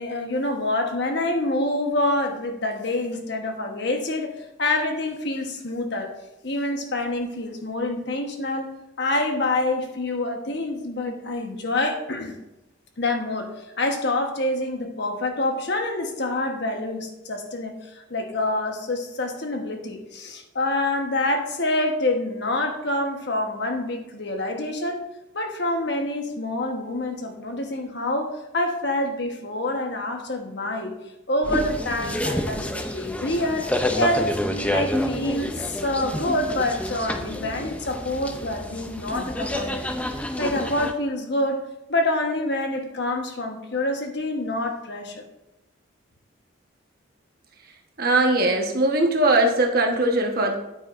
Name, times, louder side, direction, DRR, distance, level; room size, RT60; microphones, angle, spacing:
voice 1, 0.0-4.3 4.6-6.1 6.4-8.7 9.0-12.4 13.0-13.5 13.8-25.0 25.3-31.0 31.3-39.9 40.4-41.6 41.9-45.2, left 2 dB, 55° left, 4 dB, 1.1 m, -26 dB
sound 1, 31.4-40.9, left 1 dB, 5° left, 0.5 m, -28 dB
voice 2, 48.0-50.5, right 2 dB, 50° right, 2 dB, 1.2 m, -20 dB
8.9 x 8.8 x 2.6 m, 0.96 s
head